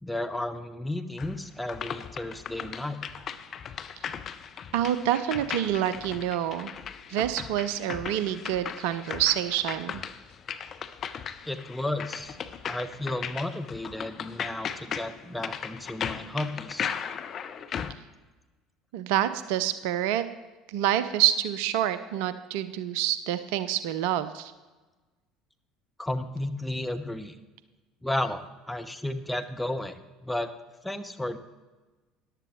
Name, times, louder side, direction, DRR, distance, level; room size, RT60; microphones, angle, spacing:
voice 1, 0.0-3.0 11.5-12.4 12.7-17.0 26.0-27.4 28.0-30.5 30.8-31.4, left 1 dB, 5° left, 7 dB, 0.9 m, -33 dB
sound 1, 1.2-17.9, left 8 dB, 40° left, 0.6 m, -37 dB
voice 2, 4.7-6.7 7.1-9.9 18.9-20.2 20.7-24.5, right 12 dB, 65° right, 13 dB, 0.5 m, -27 dB
14.5 x 11.0 x 3.1 m, 1.2 s
figure-of-eight pair, 65°, 0 cm